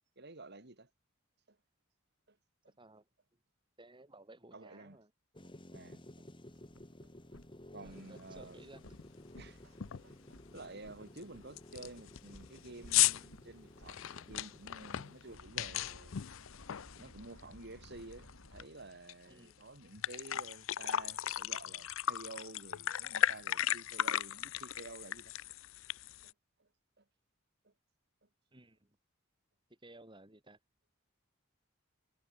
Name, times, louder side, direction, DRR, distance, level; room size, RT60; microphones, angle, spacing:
voice 1, 0.2-0.9 1.5-1.6 2.3-2.4 4.5-5.0 5.7-6.3 7.0-7.4 7.7-8.6 9.4-9.8 10.0-10.2 10.5-16.1 16.9-25.3 26.2-26.3 26.6-26.7 27.0-27.1 27.6-27.7, right 2 dB, 55° right, 2.4 m, -51 dB
voice 2, 3.8-5.1 7.8-9.1 19.3-19.6 28.5-29.0 29.7-30.6, right 2 dB, 25° right, 4.4 m, -57 dB
sound 1, 5.3-15.4, left 1 dB, 25° left, 2.3 m, -55 dB
sound 2, 6.5-18.7, left 1 dB, 85° left, 5.1 m, -59 dB
sound 3, 8.2-8.3 8.7-9.0 9.3-9.4 9.8-10.1 10.6-10.7 11.2-11.3 11.6-17.5 17.8-19.1 19.5-19.6 19.9-26.3, left 12 dB, 70° left, 0.5 m, -36 dB
head